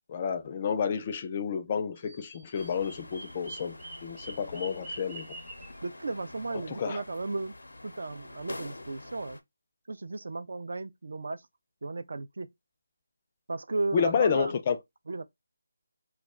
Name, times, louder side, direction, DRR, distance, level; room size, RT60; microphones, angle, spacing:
voice 1, 0.1-5.3 6.5-7.0 13.9-14.8, left 6 dB, 30° left, 0.3 m, -30 dB
Bird vocalization bird call bird song, 1.9-5.8, right 2 dB, 10° right, 0.6 m, -45 dB
sound 1, 2.5-9.4, left 2 dB, 90° left, 0.5 m, -46 dB
voice 2, 5.8-7.5 7.8-9.4 9.9-11.5 11.8-12.5 13.5-14.5 15.1-15.2, right 3 dB, 65° right, 0.3 m, -34 dB
2.2 x 2.1 x 3.5 m
figure-of-eight pair, 165°, 0 cm